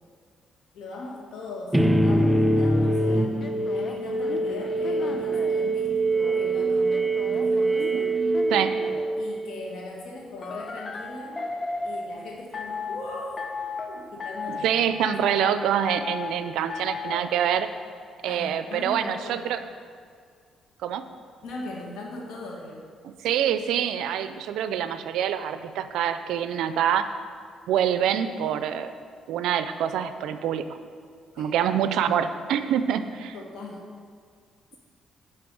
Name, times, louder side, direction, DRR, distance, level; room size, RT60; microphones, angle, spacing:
voice 1, 0.7-3.4 3.7-8.1 9.2-11.5 11.8-13.4 13.9-14.8 15.3-15.5 18.2-19.5 21.4-22.8 31.4-31.5 33.3-33.9, left 2 dB, 80° left, -1 dB, 1.7 m, -39 dB
sound 1, 1.7-9.6, right 2 dB, 10° right, 0.5 m, -24 dB
sound 2, 2.7-5.7 6.2-9.2 10.4-12.1 12.5-13.0 13.4-13.9 14.2-14.7 15.0-15.6 15.9-16.3 16.7-17.2, left 4 dB, 40° left, 0.7 m, -35 dB
voice 2, 14.5-17.7 18.2-19.6 20.8-21.0 23.0-27.0 27.7-28.9 29.3-30.6 31.4-33.3, right 9 dB, 85° right, 10 dB, 0.4 m, -25 dB
6.9 x 5.5 x 6.9 m, 2.1 s
cardioid pair, 90°, 0 cm